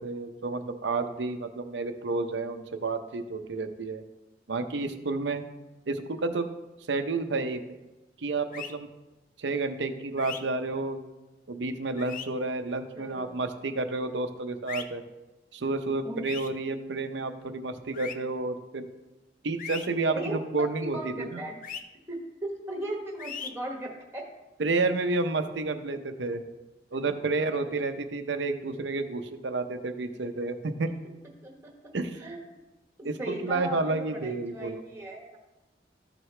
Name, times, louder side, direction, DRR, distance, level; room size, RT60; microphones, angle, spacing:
voice 1, 0.0-4.0 4.5-5.4 5.9-6.5 6.9-7.6 8.2-8.9 9.4-11.0 11.5-15.0 15.5-18.9 19.4-21.4 24.6-26.4 26.9-30.9 31.9-32.2 33.0-34.8, right 3 dB, 75° right, 8 dB, 0.7 m, -30 dB
sound 1, 8.5-8.7 10.2-10.4 12.0-12.3 14.7-14.8 16.2-16.5 17.9-18.1 19.6-19.9 21.6-21.8 23.2-23.5, left 7 dB, 45° left, 0.5 m, -37 dB
voice 2, 12.9-13.4 16.0-16.2 20.1-20.4 20.9-21.5 22.1-24.2 31.4-31.7 32.2-32.4 33.0-35.4, right 1 dB, 15° right, 0 dB, 1.2 m, -37 dB
13.0 x 4.8 x 3.3 m, 1.0 s
head